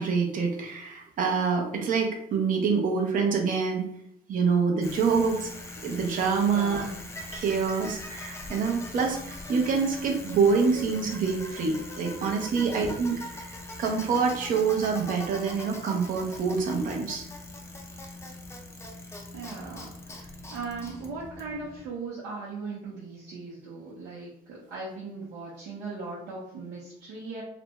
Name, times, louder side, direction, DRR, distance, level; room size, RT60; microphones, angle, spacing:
voice 1, 0.0-3.8 4.3-5.5 5.8-6.8 7.3-17.2, right 5 dB, 55° right, 2 dB, 0.7 m, -26 dB
Bicycle, 4.8-21.9, left 2 dB, 15° left, 0.5 m, -41 dB
voice 2, 6.5-6.9 12.6-12.9 19.3-27.4, right 4 dB, 85° right, -8 dB, 0.8 m, -38 dB
2.5 x 2.2 x 3.0 m, 0.72 s
cardioid pair, 110°, 17 cm